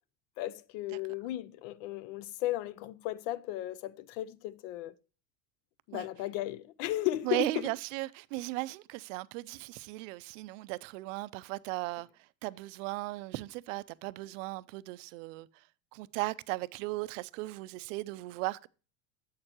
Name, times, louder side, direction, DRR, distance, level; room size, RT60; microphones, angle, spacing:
voice 1, 0.4-5.0 5.9-7.6, left 15 dB, 70° left, 0.6 m, -35 dB
voice 2, 7.2-12.1 12.4-15.5 15.9-18.7, right 21 dB, 75° right, 0.5 m, -37 dB
7.6 x 6.6 x 2.9 m
cardioid pair, 155°, 38 cm